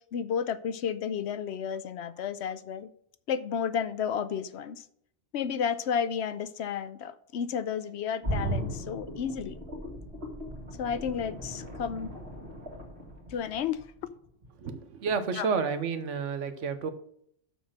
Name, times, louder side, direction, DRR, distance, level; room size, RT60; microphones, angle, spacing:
voice 1, 0.1-2.9 3.3-4.8 5.3-9.6 10.8-12.1 13.3-13.8 15.3-15.5, left 7 dB, 70° left, 14 dB, 0.9 m, -32 dB
sound 1, 8.2-14.0 14.4-14.5, right 1 dB, 50° right, 2.4 m, -37 dB
voice 2, 14.6-16.9, right 5 dB, 85° right, 10 dB, 1.3 m, -30 dB
7.0 x 6.3 x 6.1 m, 0.68 s
omnidirectional pair, 1.2 m